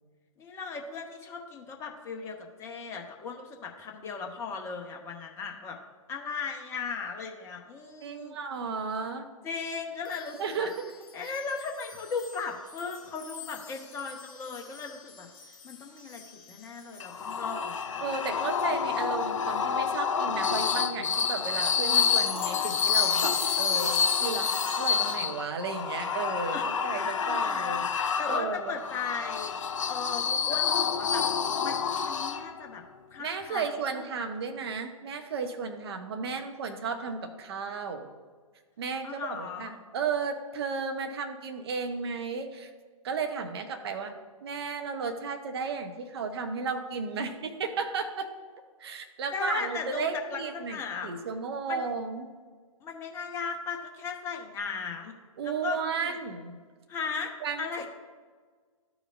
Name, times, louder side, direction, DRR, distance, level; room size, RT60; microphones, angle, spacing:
voice 1, 0.4-5.8 6.1-8.3 9.4-10.7 11.1-15.3 15.6-16.2 16.5-18.0 26.5-29.5 29.8-31.2 31.6-32.8 33.1-34.0 39.0-39.8 49.3-51.1 51.7-51.8 52.8-55.1 55.4-56.2 56.9-57.3 57.6-57.9, left 5 dB, 15° left, 2 dB, 0.8 m, -37 dB
voice 2, 8.0-9.3 10.4-10.9 11.2-11.3 18.0-28.8 33.2-38.1 38.8-42.7 43.0-44.1 44.4-48.3 48.8-52.3 55.4-56.6 57.4-57.9, right 5 dB, 45° right, 6 dB, 0.8 m, -34 dB
sound 1, 10.1-18.0 18.6-18.8 19.6-19.7 21.8-25.2, left 6 dB, 35° left, 1.1 m, -41 dB
sound 2, 17.0-32.7, left 7 dB, 60° left, 0.5 m, -28 dB
13.5 x 5.0 x 2.5 m, 1.5 s
figure-of-eight pair, 120°, 18 cm